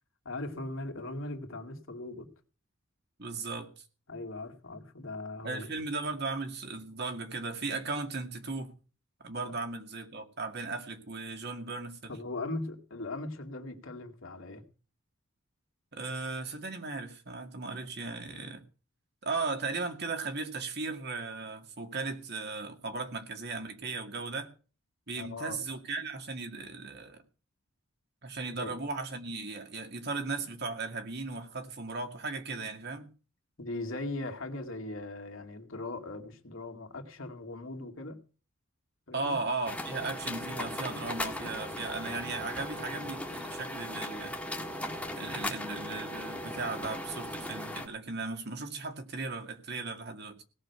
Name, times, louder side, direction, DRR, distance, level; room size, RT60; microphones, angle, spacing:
voice 1, 0.2-2.3 4.1-5.7 12.1-14.6 25.2-25.6 28.6-28.7 33.6-38.2 39.1-39.4 44.1-44.3, left 2 dB, 65° left, 2.3 m, -39 dB
voice 2, 3.2-3.8 5.4-8.7 9.2-12.1 15.9-18.6 19.2-24.5 25.1-27.2 28.2-33.1 39.1-44.3 45.2-50.4, right 3 dB, 50° right, 2.2 m, -37 dB
sound 1, 39.7-47.9, left 1 dB, 5° left, 1.6 m, -38 dB
17.5 x 6.5 x 8.0 m
head